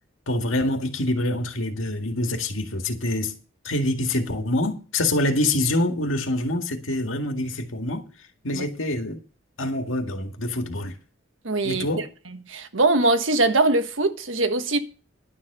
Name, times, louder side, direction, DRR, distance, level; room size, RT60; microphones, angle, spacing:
voice 1, 0.3-3.4 3.6-8.0 8.4-9.2 9.6-10.9 11.6-12.1, left 1 dB, 85° left, 2.1 m, -25 dB
voice 2, 11.4-14.8, right 2 dB, 80° right, 1.4 m, -22 dB
11.5 x 7.3 x 6.7 m
head